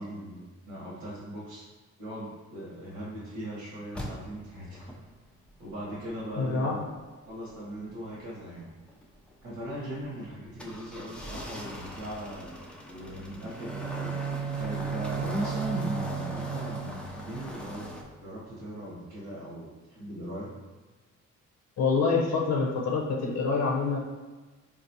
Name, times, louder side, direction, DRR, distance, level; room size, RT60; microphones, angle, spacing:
voice 1, 0.0-1.6 2.0-4.9 5.6-6.8 7.3-8.7 9.4-17.9 18.2-20.5, right 1 dB, 80° right, -7 dB, 1.1 m, -39 dB
sound 1, 3.9-18.0, equal, 5° left, 0.4 m, -42 dB
voice 2, 6.4-6.8 21.8-24.0, left 4 dB, 60° left, -1 dB, 0.6 m, -26 dB
Bowed string instrument, 13.5-17.2, right 7 dB, 45° right, 0.6 m, -34 dB
3.8 x 2.3 x 2.7 m, 1.3 s
cardioid pair, 90°, 30 cm